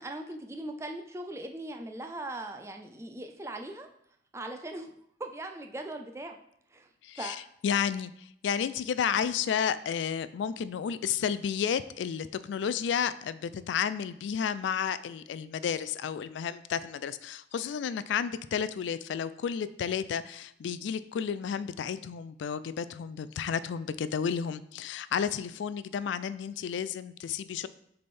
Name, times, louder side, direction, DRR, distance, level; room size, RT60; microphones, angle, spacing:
voice 1, 0.0-3.9 4.3-4.9 5.2-6.4 6.7-6.9 7.2-7.4, right 1 dB, 15° right, 5 dB, 0.4 m, -39 dB
voice 2, 7.0-27.7, left 7 dB, 80° left, 15 dB, 0.3 m, -32 dB
6.6 x 3.4 x 4.2 m, 0.71 s
head